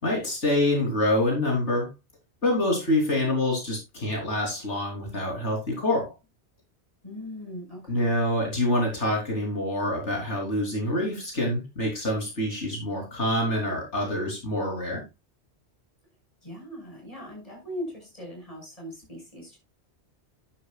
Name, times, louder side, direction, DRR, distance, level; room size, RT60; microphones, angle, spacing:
voice 1, 0.0-1.9 2.4-6.1 7.9-15.0, left 1 dB, 85° left, -1 dB, 3.9 m, -26 dB
voice 2, 7.0-8.1 16.4-19.6, left 1 dB, 30° left, -1 dB, 6.5 m, -39 dB
11.0 x 10.5 x 2.4 m, 0.23 s
omnidirectional pair, 1.1 m